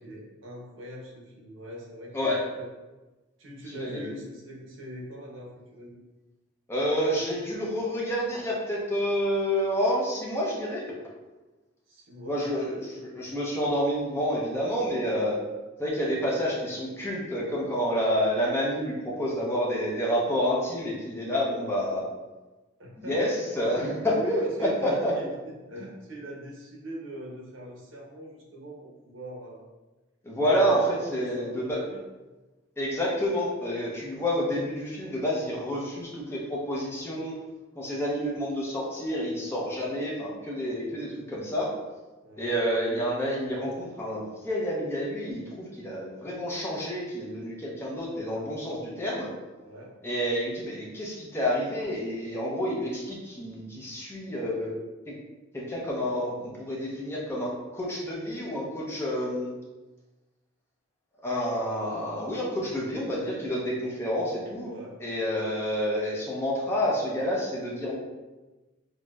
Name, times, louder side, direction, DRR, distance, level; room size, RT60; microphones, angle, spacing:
voice 1, 0.0-2.7 3.4-6.0 11.9-12.8 22.8-23.5 24.1-29.6 30.4-30.7 31.1-32.0 42.2-42.6 49.6-49.9 64.6-65.0, right 1 dB, 70° right, -2 dB, 0.8 m, -41 dB
voice 2, 6.7-11.0 12.3-15.4 15.8-22.1 23.0-25.1 30.2-31.8 32.8-37.4 37.8-41.7 42.4-49.3 50.0-54.7 55.1-55.2 55.5-59.5 61.2-64.7 65.0-68.0, equal, 10° left, -4 dB, 0.6 m, -29 dB
4.2 x 2.1 x 2.3 m, 1.2 s
head